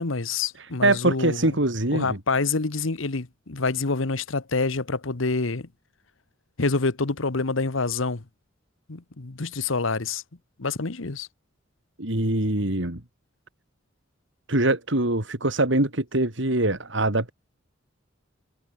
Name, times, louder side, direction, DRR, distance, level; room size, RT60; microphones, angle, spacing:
voice 1, 0.0-1.5 1.9-5.7 6.6-8.2 8.9-10.2 10.6-11.3, left 3 dB, 90° left, 1.3 m, -27 dB
voice 2, 0.5-2.2 12.0-13.0 14.5-17.3, right 2 dB, 70° right, 3.1 m, -23 dB
head